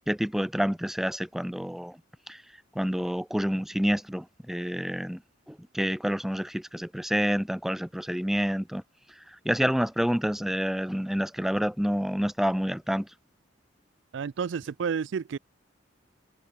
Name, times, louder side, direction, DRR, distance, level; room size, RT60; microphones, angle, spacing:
voice 1, 0.1-2.0 2.3-2.4 2.8-5.2 5.5-8.8 9.2-13.1, equal, ahead, 0.4 m, -28 dB
voice 2, 14.1-15.4, right 6 dB, 70° right, 0.4 m, -30 dB
head